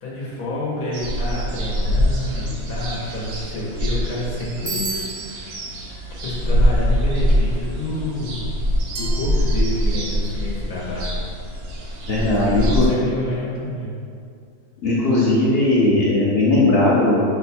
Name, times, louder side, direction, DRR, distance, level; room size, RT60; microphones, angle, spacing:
voice 1, 0.0-4.9 5.2-5.5 6.2-8.5 8.9-11.1 12.1-14.0, left 1 dB, 75° left, -6 dB, 1.4 m, -28 dB
sound 1, 0.9-12.9, equal, 90° right, 1.2 m, -23 dB
Bicycle bell, 4.7-5.6, right 2 dB, 5° right, 0.5 m, -30 dB
Glass, 9.0-10.4, right 5 dB, 70° right, 1.0 m, -39 dB
voice 2, 12.1-12.9 14.8-17.2, left 2 dB, 60° left, -6 dB, 0.7 m, -18 dB
6.0 x 2.2 x 4.1 m, 2.3 s
omnidirectional pair, 1.6 m